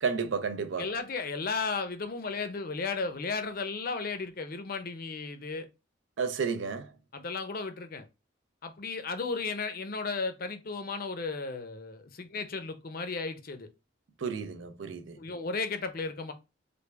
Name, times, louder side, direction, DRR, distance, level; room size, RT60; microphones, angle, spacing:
voice 1, 0.0-0.9 6.2-6.9 14.2-15.2, right 5 dB, 70° right, 0.5 m, -32 dB
voice 2, 0.8-5.7 7.1-8.0 8.6-13.7 15.2-16.3, left 4 dB, 50° left, 0.5 m, -34 dB
3.4 x 2.2 x 3.2 m
head